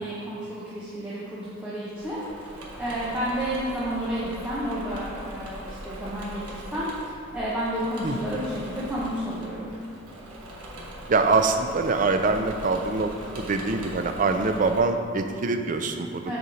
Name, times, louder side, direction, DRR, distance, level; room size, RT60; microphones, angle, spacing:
voice 1, 0.0-2.2 2.8-6.9 7.3-9.8 16.2-16.4, equal, 5° right, -9 dB, 0.9 m, -31 dB
Engine / Mechanisms, 1.9-14.8, right 1 dB, 85° right, 1.2 m, -41 dB
voice 2, 11.1-16.4, right 3 dB, 35° right, 6 dB, 0.4 m, -24 dB
6.8 x 4.3 x 4.9 m, 2.4 s
head